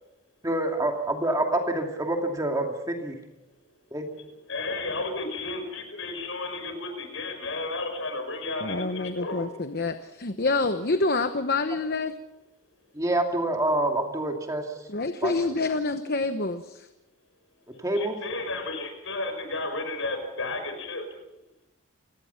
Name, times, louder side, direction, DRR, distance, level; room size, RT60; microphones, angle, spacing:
voice 1, 0.4-3.1 3.9-4.1 12.9-14.6 15.2-15.3 17.8-18.2, right 1 dB, 15° right, 2 dB, 2.5 m, -26 dB
voice 2, 4.2-9.4 17.7-21.2, left 2 dB, 65° left, 5 dB, 5.8 m, -33 dB
voice 3, 8.6-12.1 14.9-16.9, left 3 dB, 45° left, 8 dB, 1.0 m, -27 dB
29.5 x 17.5 x 5.8 m, 0.93 s
head